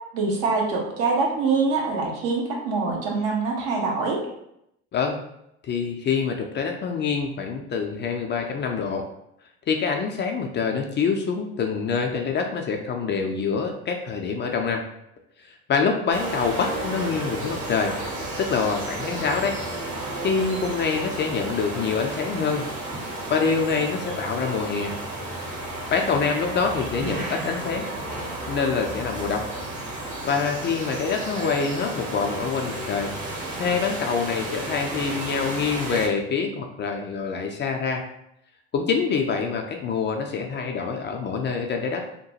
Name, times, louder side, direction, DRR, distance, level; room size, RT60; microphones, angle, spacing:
voice 1, 0.1-4.2, right 4 dB, 65° right, -1 dB, 1.0 m, -24 dB
voice 2, 5.6-9.0 9.7-14.8 15.4-17.9 18.4-19.6 20.2-22.6 23.3-25.0 25.9-27.8 28.5-29.5 30.2-33.1 33.6-38.0 38.7-42.0, left 5 dB, 30° left, 3 dB, 0.4 m, -25 dB
sound 1, 16.1-36.1, right 2 dB, 45° right, 1.2 m, -32 dB
2.8 x 2.2 x 2.8 m, 0.79 s
hypercardioid pair, 75°, 37 cm